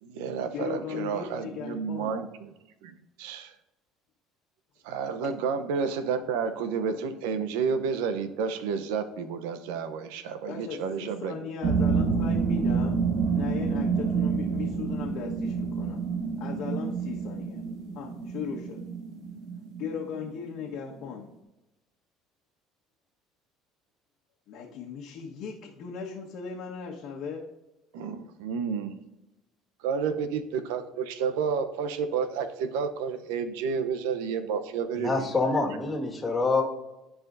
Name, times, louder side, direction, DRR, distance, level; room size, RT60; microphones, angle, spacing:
voice 1, 0.0-2.5 2.8-3.5 4.8-11.4 27.9-29.0 29.8-35.3, right 6 dB, 90° right, 10 dB, 0.7 m, -30 dB
voice 2, 0.5-2.2 5.2-5.3 10.5-13.0 13.3-16.0 16.4-17.6 17.9-18.8 19.8-21.3 24.5-27.4, left 6 dB, 65° left, -3 dB, 1.3 m, -37 dB
sound 1, 11.6-20.6, right 5 dB, 65° right, 1.4 m, -28 dB
voice 3, 35.0-36.6, left 3 dB, 20° left, 0 dB, 1.7 m, -26 dB
13.5 x 4.9 x 2.6 m, 0.98 s
supercardioid pair, 110°, 0 cm